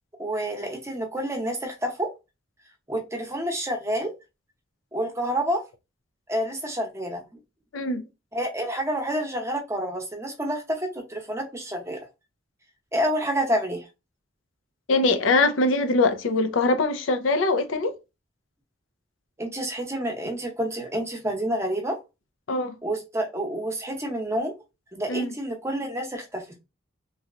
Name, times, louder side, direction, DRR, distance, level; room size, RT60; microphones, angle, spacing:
voice 1, 0.2-2.1 2.9-4.1 4.9-5.6 6.3-7.2 8.3-12.0 12.9-13.8 19.4-22.0 22.8-24.5 24.9-26.4, right 1 dB, 15° right, 0.7 m, -28 dB
voice 2, 14.9-18.0 22.5-22.7 25.1-25.3, left 3 dB, 85° left, 0.5 m, -22 dB
3.1 x 2.8 x 2.4 m
head